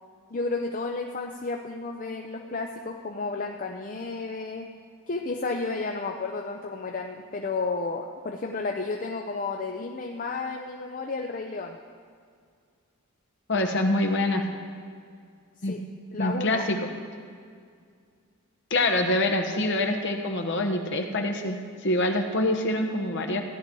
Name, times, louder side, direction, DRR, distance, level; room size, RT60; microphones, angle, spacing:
voice 1, 0.3-4.7 5.1-11.8 15.7-15.8 16.1-16.6, left 3 dB, 40° left, 3 dB, 0.5 m, -32 dB
voice 2, 13.5-14.4 15.6-15.8 16.2-16.8 18.7-21.6 21.8-23.4, left 1 dB, 55° left, 4 dB, 1.2 m, -25 dB
15.5 x 10.5 x 4.6 m, 2.2 s
head